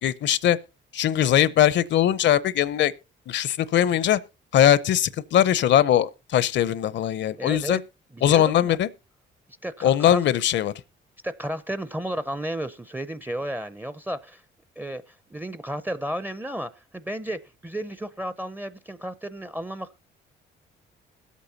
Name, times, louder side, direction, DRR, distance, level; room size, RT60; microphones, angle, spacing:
voice 1, 0.0-0.6 0.9-2.9 3.3-4.2 4.5-7.8 8.2-8.9 9.8-10.7, left 11 dB, 65° left, 0.6 m, -20 dB
voice 2, 7.4-7.8 8.1-8.8 9.6-10.2 11.2-14.4 14.8-20.1, right 1 dB, 10° right, 0.5 m, -33 dB
21.5 x 8.3 x 2.7 m
cardioid pair, 90°, 20 cm